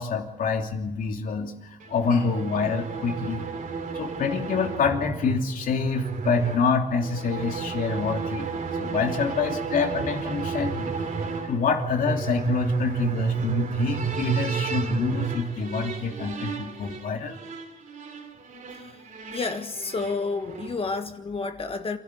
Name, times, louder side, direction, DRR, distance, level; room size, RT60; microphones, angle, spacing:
voice 1, 0.0-3.5 3.9-8.5 8.8-17.4, left 5 dB, 75° left, 3 dB, 2.9 m, -27 dB
sound 1, 1.8-20.9, right 6 dB, 70° right, 3.1 m, -32 dB
voice 2, 19.3-22.0, left 4 dB, 40° left, 7 dB, 1.6 m, -30 dB
27.0 x 12.5 x 9.9 m, 0.96 s
cardioid pair, 110°, 14 cm